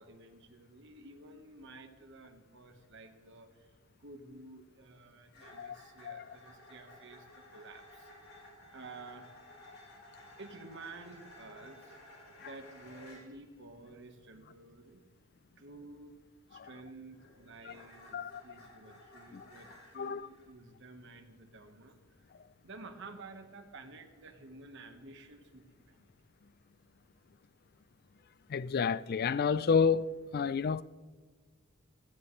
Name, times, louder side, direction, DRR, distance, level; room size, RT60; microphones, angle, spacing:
voice 1, 0.0-3.7 4.0-8.3 8.7-9.3 9.8-9.9 10.4-12.0 12.4-15.0 15.6-16.1 16.5-22.0 22.6-26.1, right 3 dB, 60° right, 1.4 m, -51 dB
sound 1, 5.3-13.3 16.7-20.5, left 1 dB, 80° left, 4.6 m, -55 dB
voice 2, 20.0-20.3 28.5-30.8, left 6 dB, 45° left, 0.4 m, -30 dB
16.0 x 15.0 x 3.2 m
head